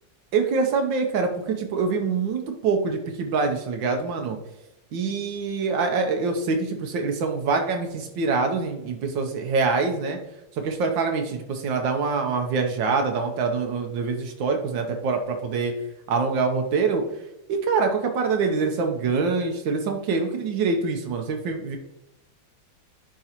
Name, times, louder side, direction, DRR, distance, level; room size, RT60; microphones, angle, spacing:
voice 1, 0.3-4.4 4.9-10.2 10.5-15.7 16.1-17.0 17.5-21.8, right 4 dB, 75° right, 4 dB, 1.5 m, -25 dB
10.5 x 3.8 x 2.9 m, 0.89 s
omnidirectional pair, 2.1 m